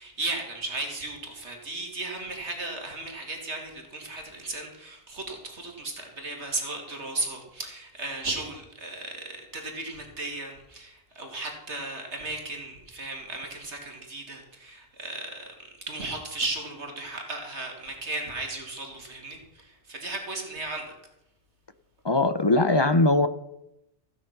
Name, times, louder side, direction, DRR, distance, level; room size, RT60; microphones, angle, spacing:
voice 1, 0.0-15.5 15.9-20.9, right 2 dB, 80° right, 2 dB, 2.8 m, -35 dB
voice 2, 22.0-23.3, left 2 dB, 25° left, 11 dB, 0.7 m, -20 dB
16.0 x 9.3 x 5.9 m, 0.85 s
omnidirectional pair, 1.2 m